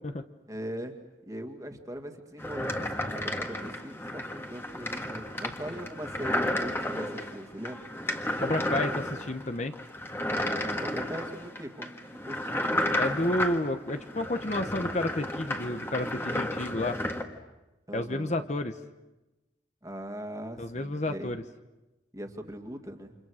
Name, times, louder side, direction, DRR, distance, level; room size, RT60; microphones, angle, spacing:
voice 1, 0.5-1.0 1.3-7.9 10.8-12.9 17.9-18.3 19.8-21.3 22.1-23.2, equal, 20° right, 5 dB, 2.1 m, -40 dB
sound 1, 2.4-17.2, left 1 dB, 15° left, 1.7 m, -32 dB
voice 2, 8.4-9.7 13.0-17.0 17.9-18.7 20.6-21.4, left 1 dB, 40° left, 8 dB, 0.9 m, -30 dB
30.0 x 27.5 x 6.4 m, 1.0 s
head